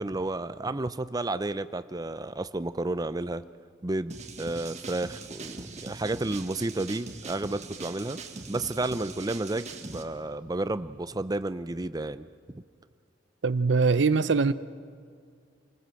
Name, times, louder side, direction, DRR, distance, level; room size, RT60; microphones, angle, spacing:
voice 1, 0.0-3.4 3.8-8.2 8.5-12.3 12.5-12.6, right 2 dB, 20° right, 13 dB, 0.5 m, -31 dB
sound 1, 4.1-10.0, right 3 dB, 35° right, 1.6 m, -41 dB
voice 2, 13.4-14.5, right 4 dB, 65° right, 15 dB, 0.6 m, -22 dB
27.0 x 19.5 x 7.7 m, 2.2 s
head